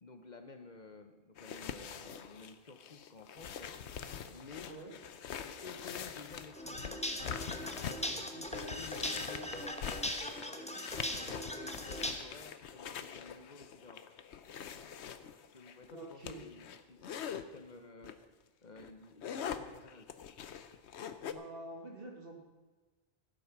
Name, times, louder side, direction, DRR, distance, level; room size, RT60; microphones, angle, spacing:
voice 1, 0.0-3.8 4.3-4.7 5.4-7.0 7.5-10.7 11.1-14.0 15.5-18.2 18.6-20.1, left 4 dB, 45° left, 7 dB, 1.0 m, -52 dB
sound 1, 1.4-17.4 18.0-18.2 18.6-21.3, left 8 dB, 85° left, 1.0 m, -44 dB
sound 2, 6.5-12.1, equal, 5° left, 1.0 m, -39 dB
voice 2, 15.9-16.4 21.3-22.4, right 2 dB, 60° right, 1 dB, 2.5 m, -47 dB
15.5 x 8.5 x 6.0 m, 1.2 s
omnidirectional pair, 1.1 m